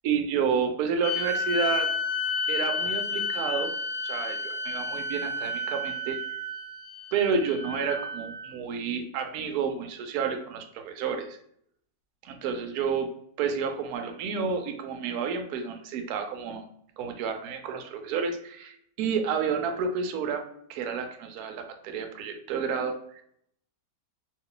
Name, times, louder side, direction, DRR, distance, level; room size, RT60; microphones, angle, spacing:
voice 1, 0.0-1.9 2.5-3.7 4.0-6.2 7.1-11.4 12.2-13.1 13.4-16.6 17.0-20.4 20.7-23.2, right 6 dB, 70° right, 5 dB, 0.9 m, -30 dB
sound 1, 1.0-8.5, left 3 dB, 85° left, 1.3 m, -31 dB
2.8 x 2.3 x 3.7 m, 0.67 s
omnidirectional pair, 1.9 m